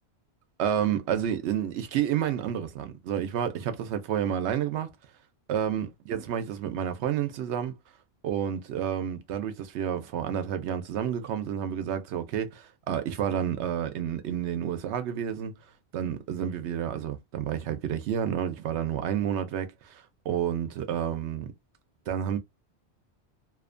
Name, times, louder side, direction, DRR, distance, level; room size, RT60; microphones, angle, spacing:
voice 1, 0.6-4.9 5.5-7.7 8.2-15.6 15.9-21.5 22.1-22.4, right 9 dB, 90° right, 0.9 m, -30 dB
2.7 x 2.1 x 2.5 m
omnidirectional pair, 1.1 m